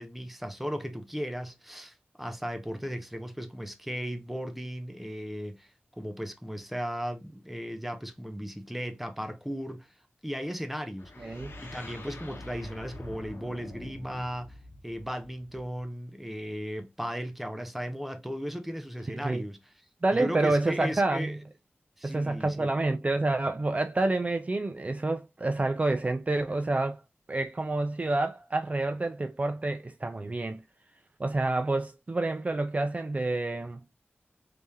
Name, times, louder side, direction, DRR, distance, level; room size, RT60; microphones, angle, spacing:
voice 1, 0.0-5.7 6.0-9.9 10.2-14.6 14.8-19.6 20.1-21.4 22.0-22.7, equal, 5° right, 0.7 m, -36 dB
sound 1, 11.0-15.8, left 1 dB, 60° left, 1.2 m, -45 dB
voice 2, 11.2-11.5 19.2-19.4 20.0-21.4 22.0-27.0 27.3-30.6 31.2-33.8, right 2 dB, 30° right, 0.4 m, -28 dB
3.5 x 3.3 x 2.7 m
wide cardioid pair, 80°, 5 cm